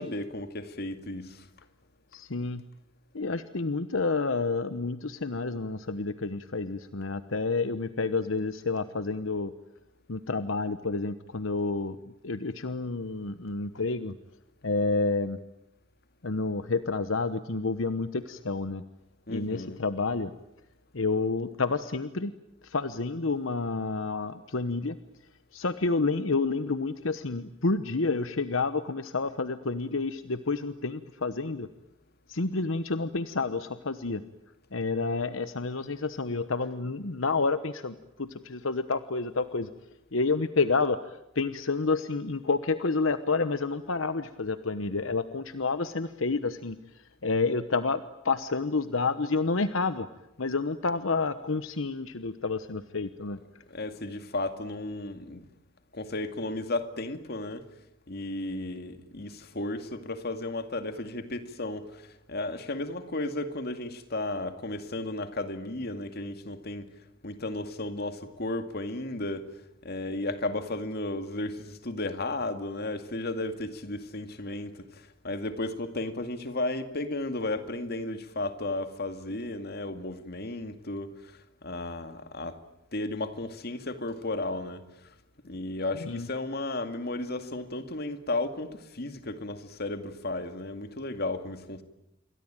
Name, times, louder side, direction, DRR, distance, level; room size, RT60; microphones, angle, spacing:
voice 1, 0.0-1.5 19.3-19.8 52.2-52.3 53.4-55.5 55.9-57.7 58.1-66.9 67.2-69.5 69.8-82.6 82.9-84.8 85.4-91.8, left 2 dB, 50° left, 2.3 m, -34 dB
voice 2, 2.1-2.6 3.1-9.5 10.1-12.0 12.2-14.1 14.6-15.4 16.2-18.8 19.3-20.3 20.9-22.3 22.6-25.0 25.5-31.7 32.3-34.2 34.7-39.7 40.1-41.0 41.3-46.8 47.2-50.1 50.4-53.4 86.0-86.3, left 3 dB, 80° left, 1.1 m, -29 dB
28.0 x 23.0 x 9.0 m
head